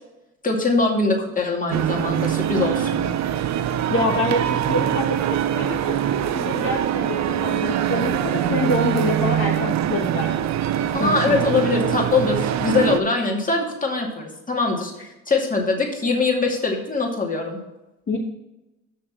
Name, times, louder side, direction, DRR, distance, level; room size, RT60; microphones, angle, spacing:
voice 1, 0.4-3.0 10.9-17.6, left 3 dB, 25° left, 0 dB, 2.3 m, -22 dB
sound 1, 1.7-13.0, right 10 dB, 65° right, 0.6 m, -23 dB
voice 2, 3.9-6.0 6.3-10.5 11.0-11.7 18.1-18.2, left 2 dB, 45° left, -2 dB, 1.5 m, -26 dB
6.4 x 6.4 x 6.0 m, 0.96 s
cardioid pair, 90°, 30 cm